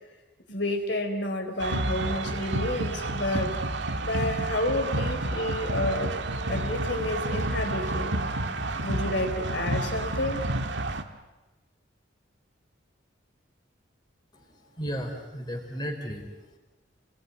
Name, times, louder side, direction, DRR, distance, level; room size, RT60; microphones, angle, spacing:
voice 1, 0.5-3.5 4.0-6.1 6.5-8.2 8.8-10.4, left 1 dB, 60° left, 4 dB, 4.1 m, -30 dB
sound 1, 1.6-11.0, right 2 dB, 65° right, 1.8 m, -30 dB
voice 2, 14.3-16.6, equal, 20° left, 2 dB, 4.1 m, -35 dB
30.0 x 20.5 x 9.8 m, 1.1 s
head